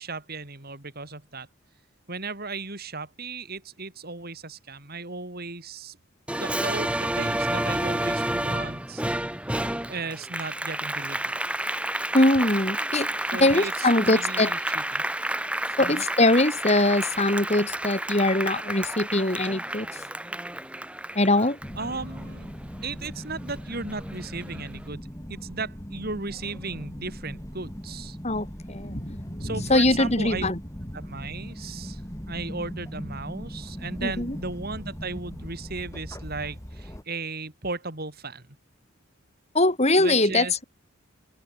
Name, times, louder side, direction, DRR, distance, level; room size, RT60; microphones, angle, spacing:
voice 1, 0.0-1.5 2.1-6.0 6.3-9.0 9.9-11.4 13.3-15.1 15.8-16.0 21.8-22.5 22.8-28.2 29.4-30.5 30.9-32.0 32.3-38.4 40.0-40.6, right 3 dB, 45° right, 3.5 m, -36 dB
Applause, 6.3-23.1 23.5-24.7, right 1 dB, 5° right, 2.0 m, -30 dB
voice 2, 12.1-13.1 13.4-14.5 15.8-19.9 21.2-21.6 28.2-30.6 34.0-34.4 39.5-40.6, left 2 dB, 30° left, 3.9 m, -22 dB
sound 1, 21.6-37.0, equal, 15° left, 4.7 m, -39 dB
open air
head